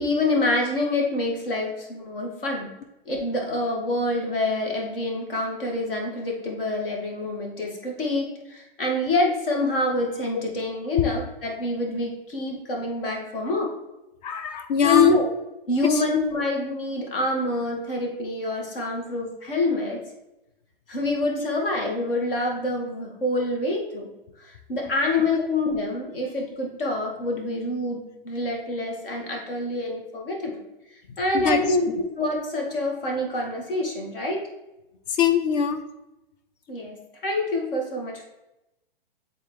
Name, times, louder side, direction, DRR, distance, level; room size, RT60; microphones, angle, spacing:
voice 1, 0.0-2.7 3.1-13.7 14.8-15.3 15.7-20.0 20.9-24.1 24.4-30.6 31.2-31.9 32.2-34.4 36.7-37.0 37.2-38.3, left 2 dB, 70° left, 0 dB, 2.0 m, -26 dB
voice 2, 14.2-15.2 21.4-21.5 25.3-25.5 31.3-31.8 35.2-35.8, left 6 dB, 45° left, 9 dB, 0.8 m, -23 dB
8.8 x 3.8 x 3.2 m, 0.94 s
hypercardioid pair, 130°, 29 cm